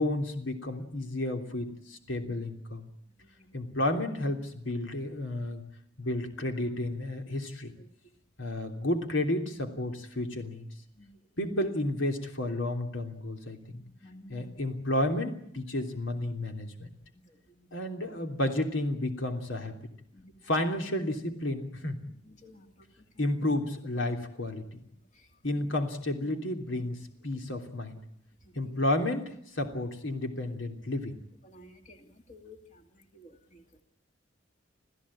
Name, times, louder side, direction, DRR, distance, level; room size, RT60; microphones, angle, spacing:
voice 1, 0.0-2.9 3.5-5.6 6.0-7.7 8.4-10.7 11.4-13.8 14.3-16.9 17.7-19.8 20.5-22.0 23.2-24.8 25.4-28.0 28.5-29.3 29.5-31.2, left 1 dB, 85° left, 4 dB, 3.2 m, -31 dB
voice 2, 14.0-14.5 20.1-20.3 22.4-22.6 28.7-28.8 31.5-32.0 32.3-32.6 33.1-33.8, left 1 dB, 40° left, 4 dB, 2.5 m, -52 dB
27.5 x 15.5 x 8.6 m, 0.72 s
head